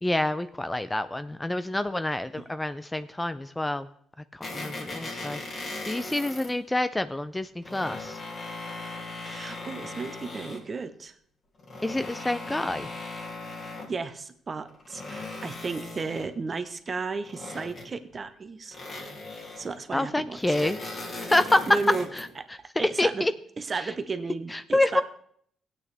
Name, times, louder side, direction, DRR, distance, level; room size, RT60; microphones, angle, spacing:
voice 1, 0.0-3.9 4.3-8.2 11.8-12.9 19.9-20.8 21.2-21.7 22.1-22.3 22.8-23.3 23.8-23.9 24.5-25.0, left 1 dB, 10° left, 12 dB, 0.4 m, -27 dB
sound 1, 4.4-6.5 7.4-10.7 11.6-14.0 14.6-16.4 17.3-18.1 18.7-19.8 20.3-22.3, left 2 dB, 45° left, 2.5 m, -38 dB
voice 2, 9.3-11.1 13.6-18.8 19.6-20.7 21.7-22.1 22.4-23.3 23.6-25.0, right 4 dB, 35° right, 10 dB, 1.0 m, -34 dB
16.0 x 8.7 x 3.4 m, 0.63 s
cardioid pair, 90°, 0 cm